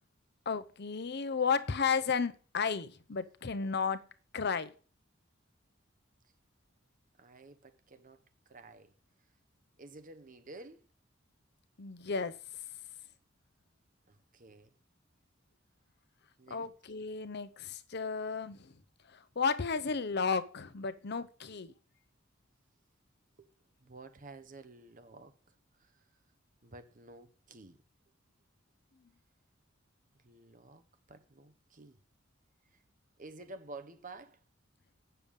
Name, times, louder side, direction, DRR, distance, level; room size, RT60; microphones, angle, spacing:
voice 1, 0.5-4.0 4.3-4.7 11.8-12.4 16.5-18.7 19.1-21.7, left 5 dB, 55° left, 0.7 m, -33 dB
voice 2, 7.2-8.2 8.5-8.9 9.8-10.9 14.1-14.7 16.4-16.7 23.4-23.5 23.8-25.3 25.8-25.9 26.6-27.8 30.2-30.8 31.1-32.0 33.2-34.4, right 2 dB, 45° right, 0.9 m, -51 dB
9.0 x 6.9 x 5.3 m
head